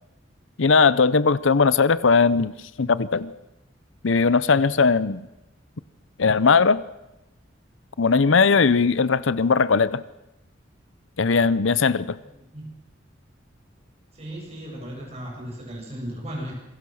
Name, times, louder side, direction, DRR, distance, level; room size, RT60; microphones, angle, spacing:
voice 1, 0.6-3.3 4.0-5.2 6.2-6.8 8.0-10.0 11.2-12.2, left 4 dB, 85° left, 17 dB, 0.7 m, -19 dB
voice 2, 12.2-12.8 14.1-16.5, equal, 35° right, -1 dB, 8.0 m, -36 dB
26.5 x 22.5 x 6.4 m, 0.95 s
head